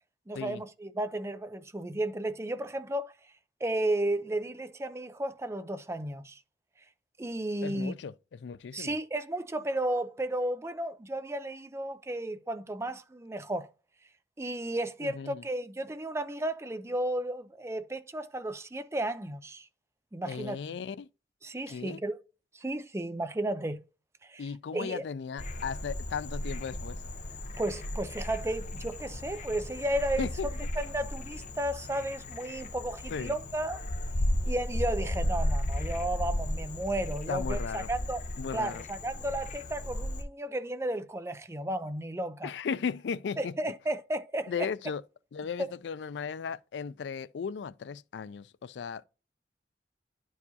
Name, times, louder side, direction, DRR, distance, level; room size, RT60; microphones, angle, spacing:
voice 1, 0.3-3.1 3.6-6.4 7.2-7.9 8.7-13.7 14.4-19.7 20.1-20.6 21.4-22.2 22.5-23.8 24.2-24.4 24.7-25.0 27.6-30.3 30.8-33.8 34.5-38.2 38.5-42.5 43.4-44.7 45.6-45.7, right 1 dB, 15° right, 0.5 m, -33 dB
voice 2, 7.6-9.0 15.0-15.4 20.2-21.1 21.7-22.0 24.4-27.0 30.2-30.5 33.1-33.3 37.3-37.9 38.4-38.8 42.4-43.5 44.5-45.0 45.3-49.0, left 6 dB, 80° left, 0.4 m, -36 dB
Frog, 25.4-40.2, left 1 dB, 45° left, 0.7 m, -35 dB
11.0 x 4.7 x 2.8 m
head